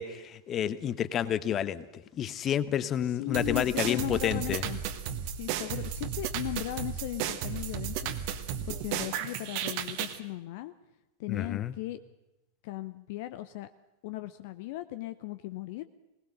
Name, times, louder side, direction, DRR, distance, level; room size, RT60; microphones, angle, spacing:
voice 1, 0.0-1.9 2.2-4.6 11.3-11.7, left 9 dB, 30° left, 16 dB, 1.0 m, -30 dB
voice 2, 3.0-4.8 5.3-10.7 11.2-12.0 12.6-13.7 14.0-15.9, left 17 dB, 50° left, 12 dB, 0.6 m, -37 dB
sound 1, 3.3-10.2, right 9 dB, 45° right, 1.5 m, -34 dB
20.5 x 19.0 x 6.6 m, 1.0 s
figure-of-eight pair, 90°, 0 cm